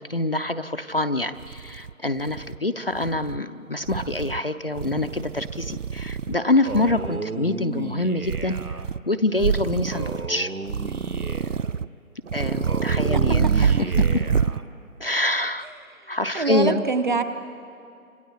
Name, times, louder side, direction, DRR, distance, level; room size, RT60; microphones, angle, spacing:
voice 1, 0.0-8.6 9.1-10.5 12.3-14.2 15.0-15.7 16.1-16.8, left 2 dB, 40° left, 8 dB, 0.6 m, -25 dB
sound 1, 1.0-1.1 1.4-2.6 2.9-3.4 3.8-4.4 4.7-6.4 6.7-7.2 8.2-9.0 9.4-10.3 10.7-11.9 12.3-14.6, right 6 dB, 60° right, 0.5 m, -26 dB
Male speech man speaking, 6.6-8.9 9.9-11.7 12.6-14.6, right 3 dB, 80° right, 1.6 m, -34 dB
voice 2, 16.3-17.2, right 4 dB, 35° right, 9 dB, 1.1 m, -23 dB
29.5 x 27.0 x 4.6 m, 2.4 s
figure-of-eight pair, 155°, 44 cm